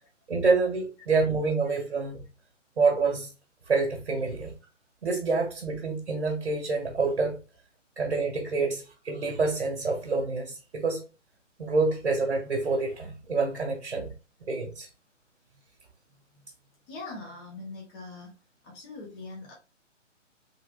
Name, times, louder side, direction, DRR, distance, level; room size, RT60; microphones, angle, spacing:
voice 1, 0.3-2.2 2.8-3.3 3.7-4.5 5.0-7.4 8.0-11.1 11.6-14.1 14.5-14.9, right 4 dB, 60° right, 2 dB, 1.5 m, -27 dB
voice 2, 16.9-18.3 18.6-19.5, left 3 dB, 10° left, -3 dB, 0.7 m, -41 dB
3.8 x 3.3 x 3.5 m, 0.32 s
figure-of-eight pair, 135°, 38 cm